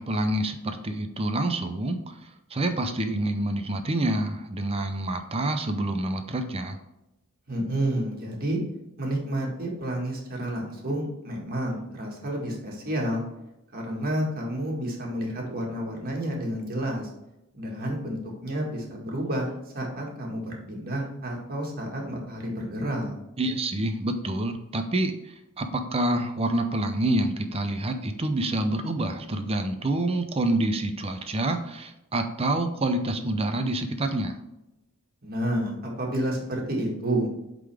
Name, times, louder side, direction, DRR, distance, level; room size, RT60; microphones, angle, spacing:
voice 1, 0.0-6.8 23.4-34.4, right 1 dB, 25° right, 7 dB, 0.6 m, -27 dB
voice 2, 7.5-8.6 9.0-13.2 13.7-17.1 17.5-23.2 35.2-37.3, right 1 dB, 45° right, -1 dB, 1.8 m, -30 dB
8.3 x 3.8 x 3.4 m, 0.91 s
head